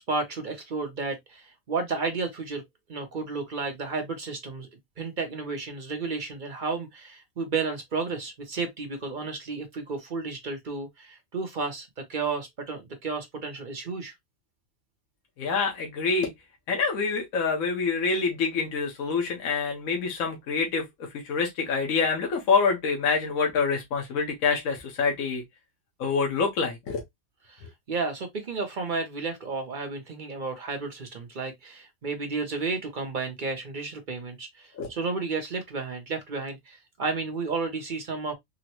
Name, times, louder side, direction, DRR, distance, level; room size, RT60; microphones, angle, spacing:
voice 1, 0.0-2.6 2.9-4.7 5.0-14.1 27.5-38.3, right 4 dB, 45° right, 0.6 m, -32 dB
voice 2, 15.4-16.3 16.7-20.8 21.2-25.4 26.0-27.0 34.8-34.9, left 5 dB, 70° left, 1.2 m, -26 dB
3.8 x 2.0 x 2.8 m
omnidirectional pair, 1.5 m